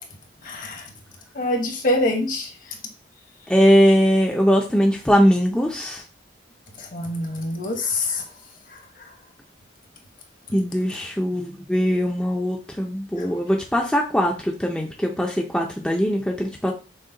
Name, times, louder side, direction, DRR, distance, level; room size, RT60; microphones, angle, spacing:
voice 1, 0.4-0.8 1.3-2.5 6.9-8.2, left 1 dB, 45° left, 3 dB, 1.0 m, -24 dB
voice 2, 3.5-6.0 10.5-16.7, equal, 5° left, 0 dB, 0.4 m, -20 dB
6.4 x 2.2 x 3.8 m, 0.34 s
head